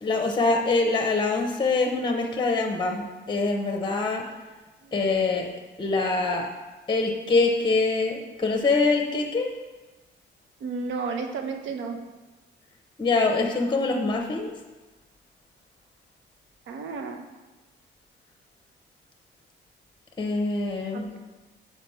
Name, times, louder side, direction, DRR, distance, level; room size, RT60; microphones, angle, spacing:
voice 1, 0.0-4.2 4.9-5.5 5.8-6.5 6.9-9.5 13.0-14.5 20.2-21.1, left 3 dB, 25° left, 2 dB, 0.9 m, -24 dB
voice 2, 10.6-12.0 16.7-17.2 20.9-21.0, right 4 dB, 75° right, 5 dB, 0.9 m, -32 dB
5.1 x 4.9 x 5.7 m, 1.2 s
cardioid pair, 90°, 20 cm